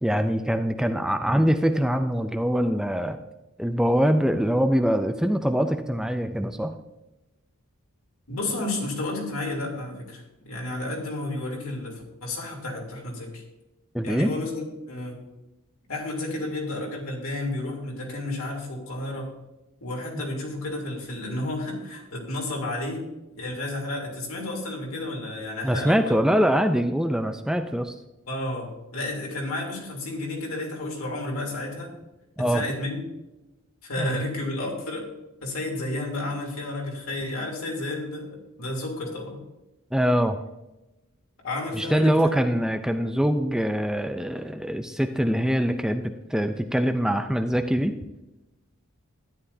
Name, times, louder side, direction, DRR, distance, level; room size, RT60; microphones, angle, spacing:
voice 1, 0.0-3.2 3.6-6.7 13.9-14.3 25.6-27.9 32.4-32.6 34.0-34.1 39.9-40.4 41.7-47.9, equal, 5° right, 7 dB, 0.4 m, -23 dB
voice 2, 8.3-13.4 14.0-15.2 15.9-19.3 19.8-23.1 23.3-26.1 28.3-31.9 32.4-33.0 33.8-35.1 35.4-39.4 41.4-42.3, left 2 dB, 70° left, -1 dB, 3.1 m, -31 dB
13.0 x 10.5 x 2.7 m, 0.98 s
head